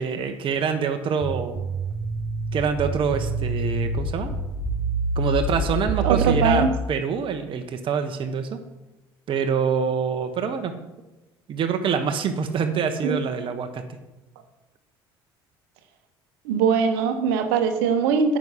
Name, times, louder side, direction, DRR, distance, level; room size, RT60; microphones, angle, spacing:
voice 1, 0.0-1.7 2.5-4.3 5.2-8.6 9.3-10.7 11.5-13.8, right 6 dB, 45° right, 6 dB, 1.0 m, -25 dB
sound 1, 1.2-6.5, right 2 dB, 20° right, 3.5 m, -26 dB
voice 2, 6.0-6.7 13.0-13.2 16.4-18.4, right 6 dB, 65° right, 6 dB, 1.1 m, -21 dB
9.3 x 6.3 x 5.7 m, 1.0 s
figure-of-eight pair, 60°, 13 cm